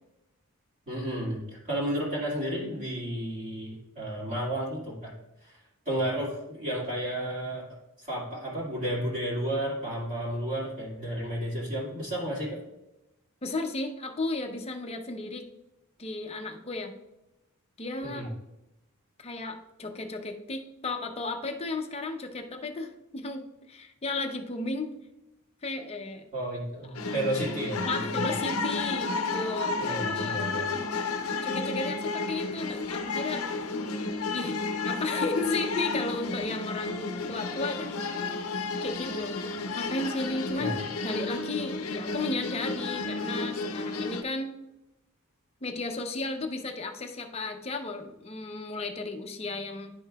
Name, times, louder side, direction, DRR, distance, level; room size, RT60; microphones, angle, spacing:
voice 1, 0.9-1.4 1.7-5.1 5.4-5.6 5.9-7.7 8.0-12.6 18.0-18.3 26.3-28.3 29.8-30.7 40.5-40.8, right 1 dB, 35° right, -6 dB, 2.1 m, -32 dB
voice 2, 13.4-15.4 16.0-16.9 17.8-18.3 19.2-24.9 25.6-26.2 27.1-27.2 27.8-30.4 31.4-33.4 34.3-38.2 38.8-44.6 45.6-49.9, left 3 dB, 30° left, 4 dB, 0.7 m, -34 dB
sound 1, 26.9-44.2, left 3 dB, 75° left, 0.6 m, -32 dB
10.5 x 5.3 x 2.3 m, 0.92 s
head